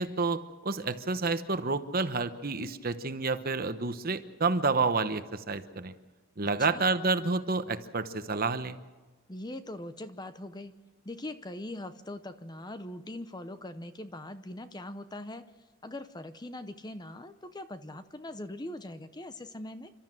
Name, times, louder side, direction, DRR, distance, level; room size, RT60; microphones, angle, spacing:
voice 1, 0.0-5.9 6.4-8.8, right 4 dB, 40° right, 11 dB, 1.0 m, -29 dB
voice 2, 9.3-10.7 11.0-15.4 15.8-19.9, left 1 dB, 20° left, 11 dB, 0.7 m, -41 dB
29.0 x 13.0 x 7.7 m, 1.3 s
head